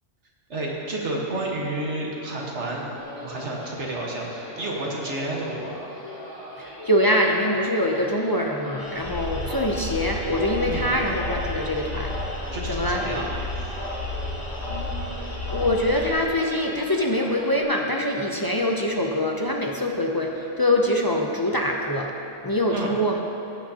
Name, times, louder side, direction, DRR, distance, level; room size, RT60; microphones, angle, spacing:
voice 1, 0.5-2.9 3.2-5.8 10.6-11.0 12.5-13.3 13.6-13.7 14.4-15.3 22.7-22.9, right 2 dB, 70° right, -2 dB, 1.7 m, -31 dB
sound 1, 3.0-17.6, left 1 dB, 85° left, 2.9 m, -40 dB
voice 2, 6.6-12.1 12.7-13.2 14.0-14.1 14.7-22.1 22.4-23.2, left 1 dB, 30° left, 0 dB, 0.4 m, -24 dB
sound 2, 8.8-16.1, left 2 dB, 65° left, 2.2 m, -32 dB
16.0 x 8.9 x 2.8 m, 2.9 s
omnidirectional pair, 1.2 m